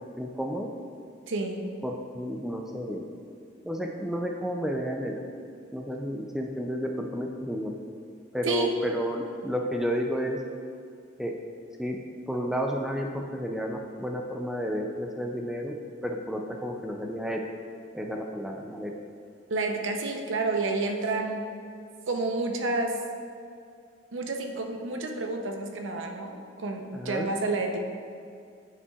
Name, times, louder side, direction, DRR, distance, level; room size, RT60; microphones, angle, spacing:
voice 1, 0.2-0.7 1.8-3.0 3.6-5.2 5.7-7.7 8.3-10.4 11.2-11.3 11.8-12.0 12.3-15.7 16.0-17.4 17.9-18.9 26.9-27.3, equal, ahead, 1 dB, 0.3 m, -31 dB
voice 2, 1.3-1.6 8.4-8.7 19.5-21.4 22.1-23.0 24.1-27.8, right 2 dB, 85° right, 3 dB, 0.7 m, -29 dB
9.6 x 5.4 x 2.4 m, 2.4 s
head